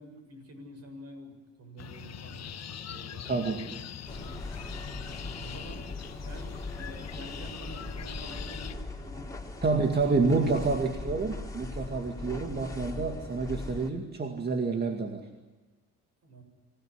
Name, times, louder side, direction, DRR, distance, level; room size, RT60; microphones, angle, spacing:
voice 1, 0.0-3.7 4.0-5.9 6.2-9.4 10.0-10.5 16.2-16.4, right 1 dB, 55° right, 5 dB, 7.4 m, -48 dB
sound 1, 1.8-8.8, left 9 dB, 60° left, 1.3 m, -42 dB
voice 2, 3.3-3.9 9.6-15.3, right 4 dB, 35° right, 3 dB, 2.3 m, -28 dB
sound 2, 4.1-13.9, left 2 dB, 10° left, 3.6 m, -40 dB
25.0 x 17.0 x 10.0 m, 1.3 s
cardioid pair, 90°, 30 cm